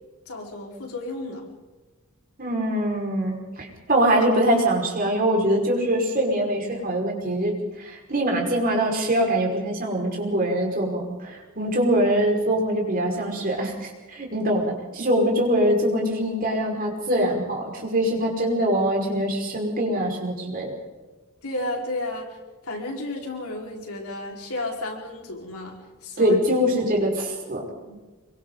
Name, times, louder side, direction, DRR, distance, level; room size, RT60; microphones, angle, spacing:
voice 1, 0.3-1.4 21.4-22.4 22.6-26.4 27.9-28.0, left 2 dB, 85° left, -1 dB, 5.0 m, -32 dB
voice 2, 2.4-20.7 26.2-27.6, right 1 dB, 40° right, 0 dB, 5.5 m, -23 dB
27.0 x 23.5 x 4.1 m, 1.2 s
head